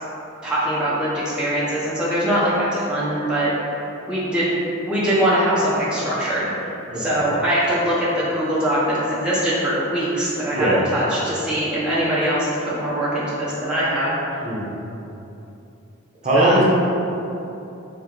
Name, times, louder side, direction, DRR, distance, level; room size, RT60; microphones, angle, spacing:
voice 1, 0.4-3.5 4.1-4.6 4.9-6.5 6.9-14.4 16.3-16.6, right 1 dB, 5° right, -10 dB, 0.6 m, -22 dB
voice 2, 16.2-16.6, right 1 dB, 35° right, -6 dB, 0.8 m, -19 dB
4.3 x 2.7 x 3.8 m, 2.9 s
head